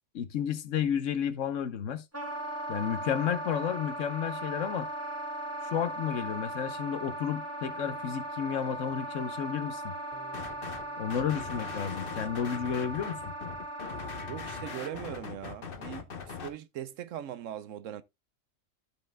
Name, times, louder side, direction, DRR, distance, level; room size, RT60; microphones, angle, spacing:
voice 1, 0.1-2.0 2.7-4.9 5.7-9.9 11.0-13.2, left 8 dB, 75° left, 1.2 m, -32 dB
Wind instrument woodwind instrument, 2.1-15.0, right 1 dB, 10° right, 1.3 m, -38 dB
sound 1, 10.1-12.7, right 3 dB, 45° right, 2.6 m, -59 dB
sound 2, 10.3-10.8 11.1-16.5, left 5 dB, 50° left, 1.1 m, -41 dB
voice 2, 14.3-18.0, right 11 dB, 80° right, 1.1 m, -40 dB
14.0 x 5.5 x 2.2 m
omnidirectional pair, 1.3 m